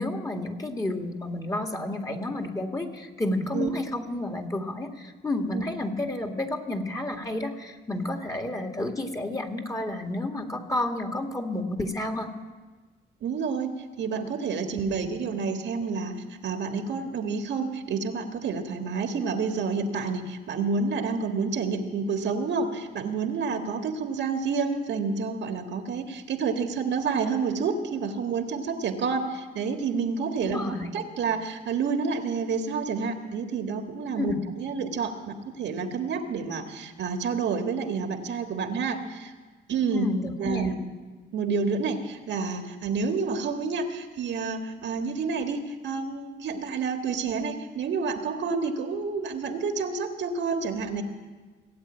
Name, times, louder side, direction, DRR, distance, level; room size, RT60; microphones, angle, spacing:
voice 1, 0.0-12.3 14.8-15.1 30.4-30.9 34.2-34.4 39.9-40.7, left 1 dB, 15° left, 4 dB, 1.8 m, -30 dB
voice 2, 13.2-13.7 14.0-34.3 34.6-39.3 39.7-40.1 40.4-40.8 41.3-51.0, right 5 dB, 65° right, 5 dB, 1.6 m, -29 dB
18.0 x 8.1 x 8.9 m, 1.3 s
cardioid pair, 90°, 20 cm